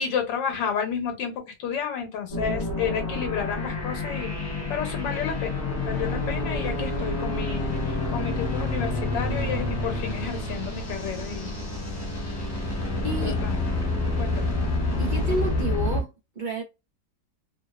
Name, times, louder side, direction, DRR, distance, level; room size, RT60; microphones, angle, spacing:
voice 1, 0.0-11.5 13.2-13.6 14.2-14.5, left 7 dB, 85° left, 1.4 m, -31 dB
sound 1, 2.3-16.0, left 2 dB, 30° left, 0.9 m, -28 dB
voice 2, 13.0-13.4 15.0-16.1 16.3-16.6, right 1 dB, 40° right, 0.7 m, -29 dB
3.5 x 2.2 x 2.3 m
omnidirectional pair, 1.9 m